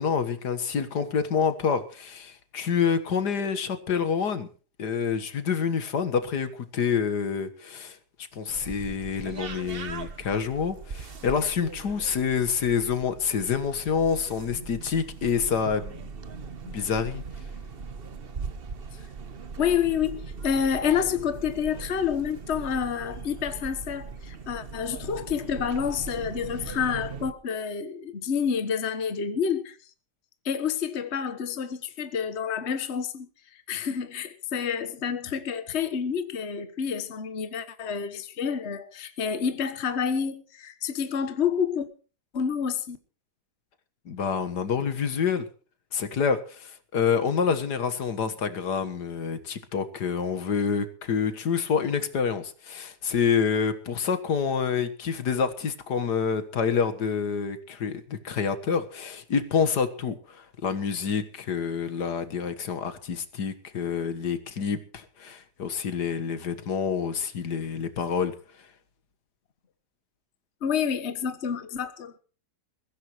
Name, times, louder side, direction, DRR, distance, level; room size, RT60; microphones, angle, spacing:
voice 1, 0.0-4.5 4.8-8.0 8.3-16.0 16.6-17.2 44.1-45.5 45.9-68.4, left 6 dB, 75° left, 2.0 m, -27 dB
sound 1, 8.5-27.3, right 5 dB, 40° right, 1.1 m, -40 dB
voice 2, 19.6-29.7 30.4-33.3 33.7-41.9 42.3-43.0 70.6-72.2, left 7 dB, 45° left, 1.4 m, -28 dB
22.0 x 15.5 x 3.1 m
omnidirectional pair, 1.8 m